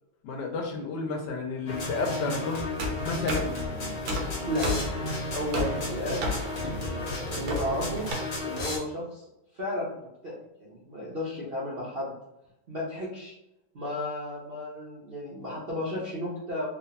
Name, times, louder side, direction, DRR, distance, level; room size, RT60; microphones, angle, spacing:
voice 1, 0.2-2.6 3.0-3.5, left 3 dB, 75° left, 2 dB, 1.2 m, -31 dB
sound 1, 1.7-8.8, left 2 dB, 55° left, 0.8 m, -34 dB
sound 2, 2.8-8.1, left 1 dB, 75° right, 1.2 m, -33 dB
voice 2, 5.3-6.2 6.8-8.1 8.4-9.2 9.5-10.3 10.6-12.1 12.7-13.3 13.7-16.6, left 1 dB, 55° right, -7 dB, 0.6 m, -33 dB
3.3 x 2.2 x 2.8 m, 0.87 s
omnidirectional pair, 1.9 m